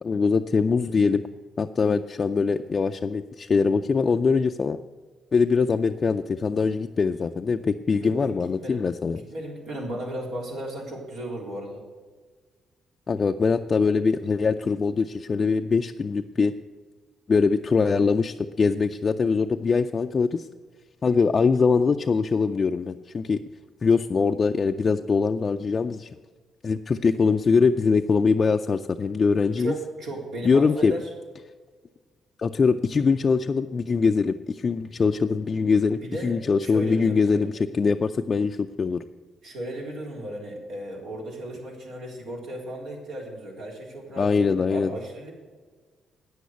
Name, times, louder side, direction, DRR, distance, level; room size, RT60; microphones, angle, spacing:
voice 1, 0.0-1.2 1.6-4.8 5.3-9.2 13.1-16.5 17.3-20.5 21.0-23.4 23.8-26.1 26.6-29.7 30.4-30.9 32.4-39.0 44.2-44.9, left 5 dB, 40° left, 5 dB, 0.4 m, -23 dB
voice 2, 8.0-8.3 8.6-8.8 9.1-11.8 29.6-31.1 36.0-37.4 39.4-45.3, right 1 dB, 80° right, -1 dB, 3.6 m, -35 dB
9.4 x 8.4 x 8.0 m, 1.4 s
cardioid pair, 90°, 0 cm